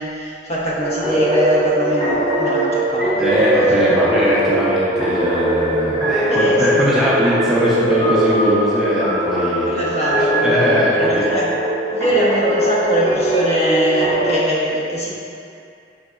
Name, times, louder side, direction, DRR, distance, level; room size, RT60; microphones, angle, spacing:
voice 1, 0.0-3.9 6.3-7.1 9.7-11.6 11.9-15.1, right 1 dB, 40° left, -6 dB, 0.8 m, -22 dB
sound 1, 0.8-14.3, right 1 dB, 20° left, 1.2 m, -20 dB
voice 2, 3.2-10.1 10.4-11.2, equal, ahead, -9 dB, 0.5 m, -20 dB
5.2 x 3.8 x 2.4 m, 2.4 s
head